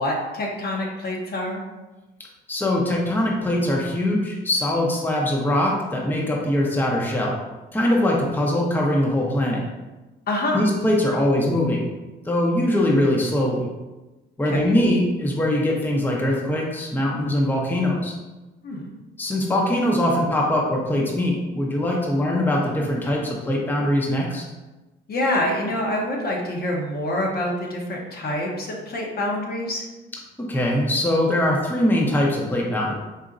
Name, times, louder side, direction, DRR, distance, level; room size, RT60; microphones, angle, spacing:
voice 1, 0.0-1.6 10.3-10.6 14.5-14.8 18.6-18.9 25.1-29.8, left 1 dB, 50° left, -1 dB, 0.8 m, -26 dB
voice 2, 2.5-7.4 7.7-9.6 10.5-11.9 12.2-13.7 14.4-18.1 19.2-24.4 30.4-32.9, left 1 dB, 10° left, -2 dB, 0.6 m, -22 dB
4.0 x 2.8 x 2.5 m, 1.1 s
cardioid pair, 90°, 20 cm